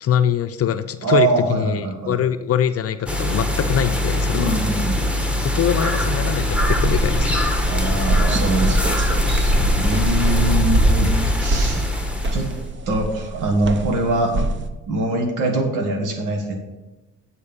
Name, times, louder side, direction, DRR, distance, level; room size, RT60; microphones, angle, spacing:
voice 1, 0.0-4.6 5.4-7.4 9.5-9.8, left 9 dB, 50° left, 10 dB, 0.5 m, -23 dB
voice 2, 1.0-2.2 4.3-5.1 7.6-8.8 9.8-11.9 12.3-12.5 12.9-14.4 14.9-16.6, right 2 dB, 90° right, 3 dB, 1.5 m, -23 dB
sound 1, 3.1-12.7, left 1 dB, 5° right, 1.1 m, -22 dB
sound 2, 6.5-14.7, right 1 dB, 40° right, 0.8 m, -23 dB
8.8 x 4.4 x 6.8 m, 1.1 s
cardioid pair, 90°, 30 cm